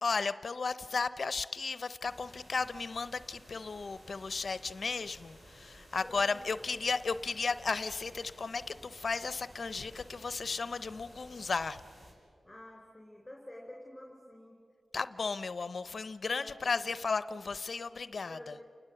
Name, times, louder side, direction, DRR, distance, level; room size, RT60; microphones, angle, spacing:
voice 1, 0.0-11.8 14.9-18.6, left 4 dB, 55° left, 15 dB, 0.6 m, -34 dB
sound 1, 2.0-12.1, equal, 40° right, 5.8 m, -55 dB
voice 2, 6.0-6.5 12.4-14.6 16.4-16.8 18.3-18.7, left 1 dB, 10° left, 0 dB, 3.9 m, -49 dB
30.0 x 19.0 x 7.8 m, 2.2 s
wide cardioid pair, 75°, 0 cm